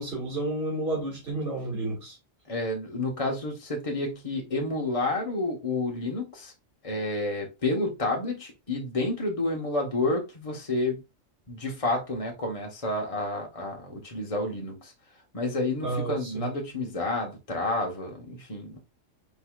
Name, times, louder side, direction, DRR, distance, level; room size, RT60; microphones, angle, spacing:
voice 1, 0.0-2.2 15.8-16.5, right 2 dB, 45° right, 2.4 m, -31 dB
voice 2, 2.5-6.5 6.8-11.0 11.5-14.9 15.3-18.8, left 2 dB, 30° left, 1.2 m, -30 dB
5.4 x 3.8 x 2.3 m
omnidirectional pair, 1.3 m